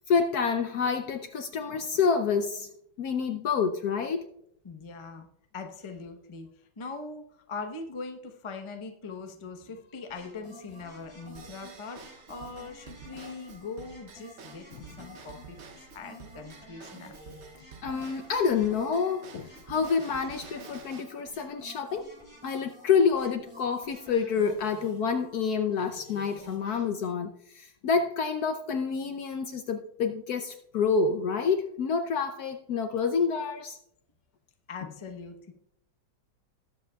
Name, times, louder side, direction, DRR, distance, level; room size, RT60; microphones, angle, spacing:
voice 1, 0.1-2.7 3.0-4.2 14.7-14.8 17.8-22.1 22.4-33.8, left 5 dB, 70° left, 7 dB, 0.9 m, -28 dB
voice 2, 4.6-5.3 5.5-14.7 15.0-17.2 34.7-35.5, left 4 dB, 45° left, 5 dB, 0.4 m, -41 dB
sound 1, 10.1-26.9, equal, 5° right, 4.0 m, -52 dB
Drum kit / Drum / Bell, 11.3-21.0, right 5 dB, 70° right, 0.6 m, -49 dB
19.5 x 7.7 x 2.3 m, 0.74 s
omnidirectional pair, 2.2 m